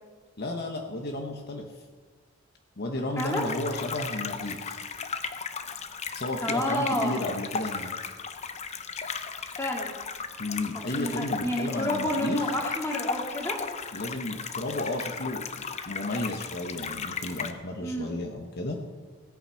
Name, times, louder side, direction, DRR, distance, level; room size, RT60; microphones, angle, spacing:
voice 1, 0.4-1.8 2.8-4.8 6.1-7.9 10.4-12.5 13.9-18.8, left 1 dB, 50° left, 2 dB, 1.1 m, -33 dB
sound 1, 3.2-17.5, left 5 dB, 30° left, 0.7 m, -36 dB
voice 2, 6.4-7.2 9.6-9.9 10.7-13.6 17.8-18.1, left 1 dB, 10° left, 0 dB, 2.2 m, -30 dB
17.0 x 9.0 x 5.7 m, 1.5 s
head